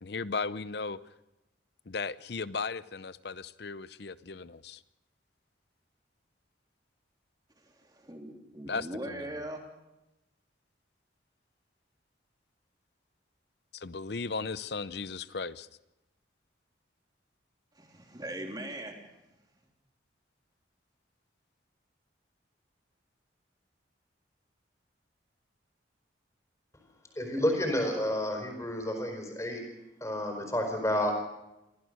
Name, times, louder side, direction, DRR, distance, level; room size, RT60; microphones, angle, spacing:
voice 1, 0.0-1.0 1.9-4.8 8.7-9.3 13.7-15.7, left 4 dB, 60° left, 0.7 m, -36 dB
voice 2, 7.6-9.6 17.7-19.0, right 1 dB, 20° right, 3.2 m, -40 dB
voice 3, 27.1-29.6 30.0-31.2, left 1 dB, 15° left, 4.6 m, -30 dB
25.0 x 16.0 x 6.6 m
head